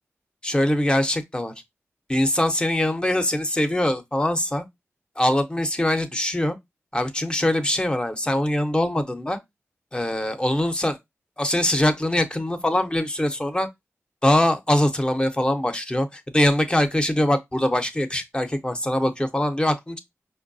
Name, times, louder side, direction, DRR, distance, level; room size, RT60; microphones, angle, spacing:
voice 1, 0.4-1.5 2.1-4.6 5.2-6.6 6.9-9.4 9.9-11.0 11.4-13.7 14.2-20.0, left 1 dB, 20° left, 0.6 m, -23 dB
4.5 x 2.2 x 2.6 m
cardioid pair, 50°, 5 cm